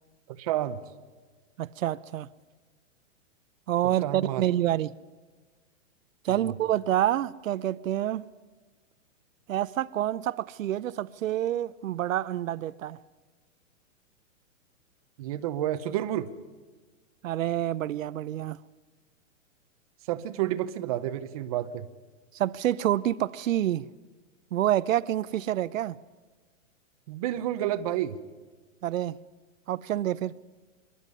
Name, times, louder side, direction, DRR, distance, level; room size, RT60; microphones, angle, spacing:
voice 1, 0.3-0.8 4.0-4.4 6.3-6.5 15.2-16.3 20.1-21.9 27.1-28.2, right 12 dB, 30° right, 0.8 m, -30 dB
voice 2, 1.6-2.3 3.7-4.9 6.2-8.2 9.5-13.0 17.2-18.6 22.3-23.9 24.5-26.0 28.8-29.2 29.7-30.3, right 12 dB, 80° right, 0.7 m, -27 dB
24.5 x 11.0 x 9.7 m
hypercardioid pair, 165°, 39 cm